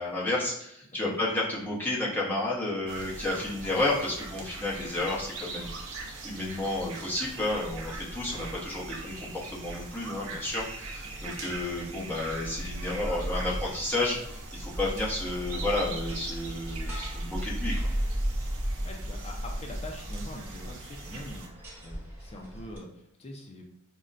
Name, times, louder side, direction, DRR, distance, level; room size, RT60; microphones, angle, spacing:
voice 1, 0.0-5.9 6.2-17.9, left 2 dB, 10° left, -5 dB, 0.8 m, -31 dB
sound 1, 2.9-22.8, equal, 10° right, 1.1 m, -38 dB
sound 2, 2.9-21.5, right 3 dB, 75° right, 0.6 m, -43 dB
voice 2, 18.6-23.6, left 1 dB, 30° left, 1 dB, 0.4 m, -44 dB
5.3 x 2.1 x 2.4 m, 0.77 s
head